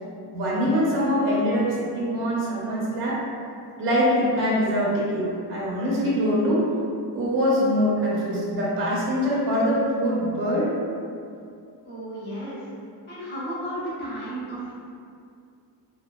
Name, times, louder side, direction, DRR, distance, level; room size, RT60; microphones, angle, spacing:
voice 1, 0.3-3.2 3.8-6.6 7.1-10.7, equal, 30° right, -6 dB, 0.5 m, -23 dB
voice 2, 11.9-12.6 13.1-14.7, right 1 dB, 25° left, -10 dB, 0.7 m, -33 dB
2.7 x 2.2 x 2.2 m, 2.4 s
cardioid pair, 165°, 42 cm